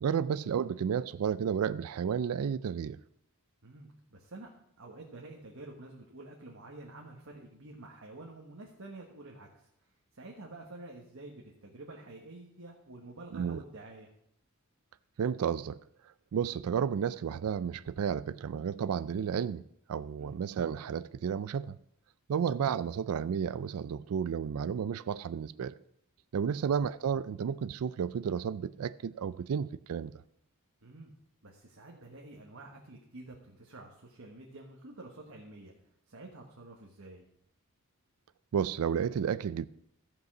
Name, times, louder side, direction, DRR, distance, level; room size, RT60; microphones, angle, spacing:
voice 1, 0.0-3.0 13.3-13.6 15.2-15.8 16.3-19.6 19.9-21.8 22.3-25.7 26.3-30.1 38.5-39.7, right 7 dB, 85° right, 0.4 m, -32 dB
voice 2, 3.6-9.7 10.1-14.1 20.2-20.4 22.4-22.5 26.5-26.7 30.8-31.1 31.4-35.7 36.1-37.3, right 2 dB, 65° right, 1.4 m, -49 dB
14.5 x 5.4 x 6.0 m
head